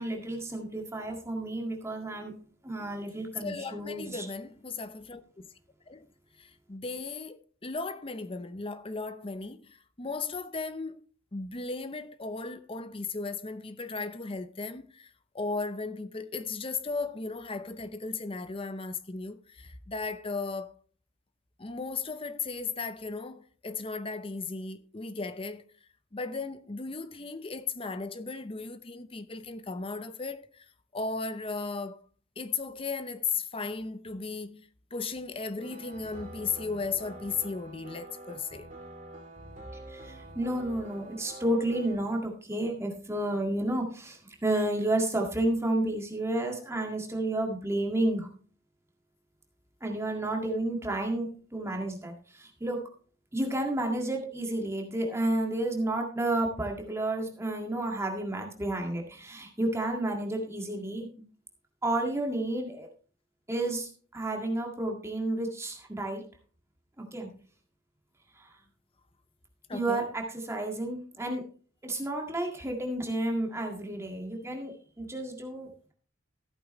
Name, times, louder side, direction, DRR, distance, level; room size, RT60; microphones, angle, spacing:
voice 1, 0.0-2.3 2.6-4.3 39.9-48.3 49.8-52.8 53.3-61.1 61.8-62.9 63.5-66.2 67.0-67.3 68.4-68.5 69.7-71.4 71.8-75.9, right 1 dB, 15° right, 1.8 m, -31 dB
voice 2, 3.4-5.5 5.9-6.1 6.4-11.1 11.3-20.7 21.6-25.7 26.1-32.0 32.4-38.7 69.7-70.1, left 4 dB, 25° left, 0.7 m, -36 dB
sound 1, 35.6-42.0, right 1 dB, 40° right, 2.9 m, -46 dB
14.5 x 8.6 x 3.1 m
head